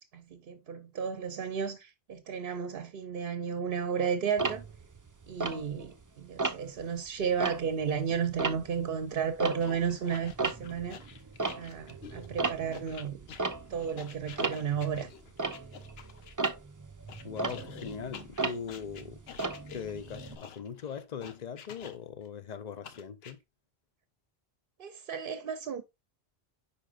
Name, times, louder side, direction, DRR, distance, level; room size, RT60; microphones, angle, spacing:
voice 1, 0.1-4.6 5.3-11.0 11.6-13.3 13.7-15.1 24.8-25.8, right 7 dB, 65° right, 0.8 m, -33 dB
Tick-tock, 4.4-6.0 6.4-6.8 7.2-10.0 10.2-20.4, right 3 dB, 25° right, 0.5 m, -36 dB
sound 1, 9.6-16.5 17.1-22.3 22.8-23.3, left 7 dB, 75° left, 1.0 m, -49 dB
voice 2, 17.2-19.2 19.7-23.4, left 6 dB, 45° left, 0.8 m, -40 dB
9.9 x 4.4 x 2.4 m
omnidirectional pair, 1.1 m